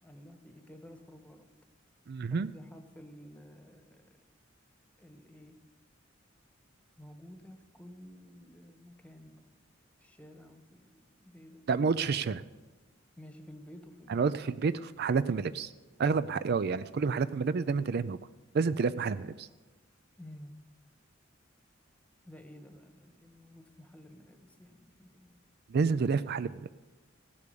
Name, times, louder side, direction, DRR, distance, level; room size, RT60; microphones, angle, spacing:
voice 1, 0.0-1.5 2.3-4.1 5.0-5.6 7.0-9.5 10.0-11.7 13.2-14.2 20.2-20.5 22.2-25.4, equal, 5° left, 7 dB, 1.3 m, -52 dB
voice 2, 2.1-2.5 11.7-12.4 14.1-15.7 16.0-18.2 18.5-19.5 25.7-26.7, right 5 dB, 55° right, 15 dB, 0.4 m, -29 dB
16.0 x 8.4 x 6.9 m, 1.2 s
head